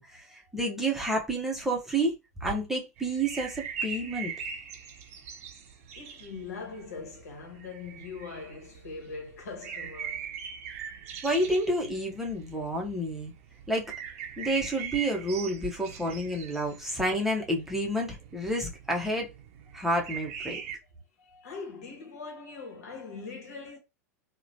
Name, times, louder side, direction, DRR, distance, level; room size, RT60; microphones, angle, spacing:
voice 1, 0.0-2.2 2.4-4.3 11.2-13.3 13.7-13.9 14.4-19.3 19.7-20.6, right 1 dB, 5° right, 0.7 m, -29 dB
sound 1, 3.0-20.8, right 7 dB, 60° right, 0.6 m, -42 dB
voice 2, 5.9-10.3 21.2-23.8, left 4 dB, 75° left, 1.0 m, -42 dB
2.9 x 2.1 x 2.6 m
hypercardioid pair, 100°, 9 cm